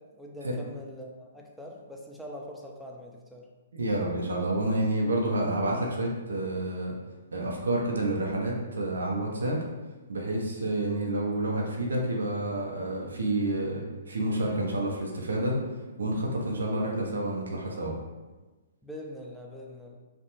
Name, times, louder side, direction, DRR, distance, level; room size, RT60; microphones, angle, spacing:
voice 1, 0.0-3.5 18.8-20.0, left 1 dB, ahead, -2 dB, 0.4 m, -43 dB
voice 2, 3.7-6.9 7.3-9.6 10.1-15.6 16.0-17.9, right 1 dB, 80° right, -1 dB, 0.5 m, -29 dB
2.5 x 2.1 x 2.9 m, 1.2 s
hypercardioid pair, 125°, 0 cm